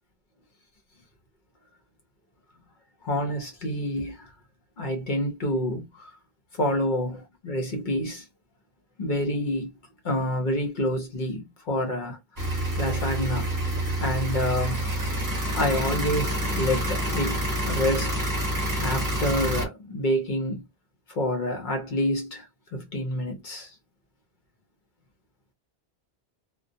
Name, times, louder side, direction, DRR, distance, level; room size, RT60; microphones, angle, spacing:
voice 1, 3.0-4.3 4.8-6.1 6.5-8.2 9.0-9.7 10.0-12.2 12.8-13.5 14.0-14.9 15.5-18.2 18.8-20.6 21.2-22.5 22.7-23.7, left 1 dB, 50° left, 0.8 m, -28 dB
sound 1, 12.4-19.6, right 1 dB, 20° right, 0.7 m, -27 dB
2.2 x 2.2 x 2.6 m
omnidirectional pair, 1.1 m